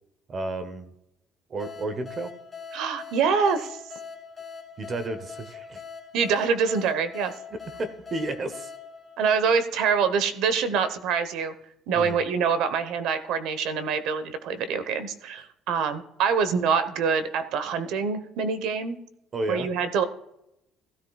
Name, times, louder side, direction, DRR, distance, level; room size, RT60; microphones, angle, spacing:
voice 1, 0.3-0.9 1.5-2.3 4.8-5.8 7.5-8.7 11.9-12.2 19.3-19.7, right 2 dB, 25° right, 10 dB, 0.8 m, -32 dB
sound 1, 1.6-10.0, left 6 dB, 15° left, 2.6 m, -43 dB
voice 2, 2.7-3.8 6.1-7.3 9.2-11.5 11.9-19.0 19.5-20.0, right 6 dB, 65° right, 11 dB, 1.0 m, -25 dB
16.5 x 13.0 x 2.3 m, 0.82 s
cardioid pair, 175°, 0 cm